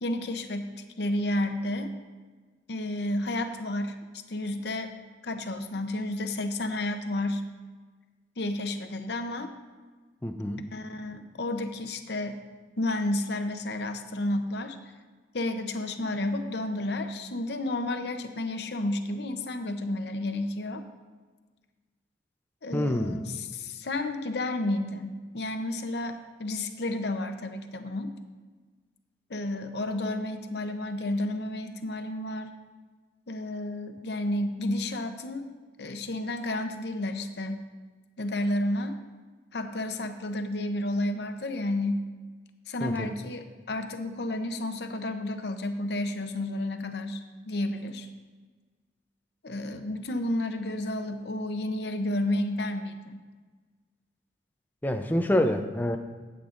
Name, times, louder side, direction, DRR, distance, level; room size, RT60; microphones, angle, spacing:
voice 1, 0.0-0.7 1.0-1.9 2.7-3.9 4.3-4.9 5.2-7.4 8.4-9.5 10.7-12.4 12.8-14.8 15.3-20.8 22.6-28.1 29.3-32.5 33.3-35.5 35.8-37.6 38.2-39.0 39.5-42.0 42.7-48.1 49.4-53.2, left 1 dB, 60° left, 7 dB, 0.7 m, -31 dB
voice 2, 10.2-10.6 22.7-23.3 42.8-43.1 54.8-56.0, left 1 dB, 10° left, 6 dB, 0.5 m, -27 dB
15.5 x 8.0 x 2.5 m, 1.4 s
head